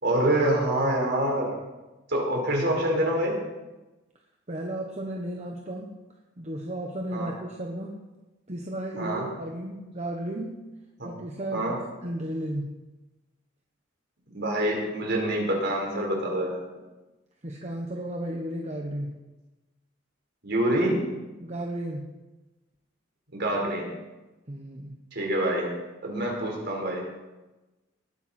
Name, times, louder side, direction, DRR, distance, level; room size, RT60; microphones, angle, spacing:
voice 1, 0.0-1.5 2.1-3.4 7.1-7.3 9.0-9.3 11.0-11.1 11.5-11.8 14.3-16.6 20.4-21.1 23.3-23.9 25.1-25.7 26.0-27.1, right 1 dB, 60° right, -1 dB, 4.4 m, -26 dB
voice 2, 4.5-5.9 6.4-7.9 8.5-10.5 11.0-11.8 12.0-12.7 17.4-19.1 21.4-22.0 24.5-24.9, right 1 dB, 35° right, 0 dB, 1.2 m, -34 dB
19.5 x 9.3 x 4.4 m, 1.1 s
head